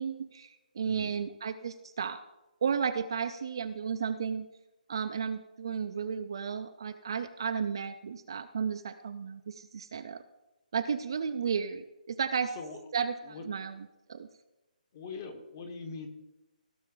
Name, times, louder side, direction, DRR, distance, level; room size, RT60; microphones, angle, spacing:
voice 1, 0.0-2.2 2.6-4.5 4.9-10.2 10.7-12.6 12.9-14.3, right 6 dB, 30° right, 9 dB, 0.4 m, -33 dB
voice 2, 0.8-1.2 12.5-12.8 13.2-13.5 14.9-16.1, left 4 dB, 20° left, 7 dB, 0.9 m, -42 dB
16.5 x 6.7 x 3.8 m, 1.0 s
hypercardioid pair, 180°, 5 cm